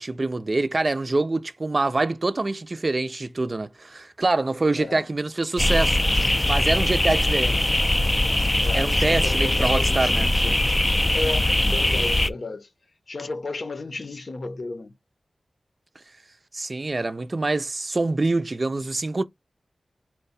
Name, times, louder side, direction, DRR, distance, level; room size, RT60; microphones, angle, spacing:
voice 1, 0.0-6.0 6.4-7.7 8.7-10.3 16.5-19.2, right 2 dB, 40° right, 0.4 m, -25 dB
voice 2, 4.7-5.1 8.6-10.7 11.1-12.7 13.1-15.0, left 3 dB, 60° left, 0.8 m, -33 dB
sound 1, 5.6-12.3, left 1 dB, 20° left, 0.4 m, -21 dB
4.4 x 2.2 x 4.0 m
wide cardioid pair, 70°, 0 cm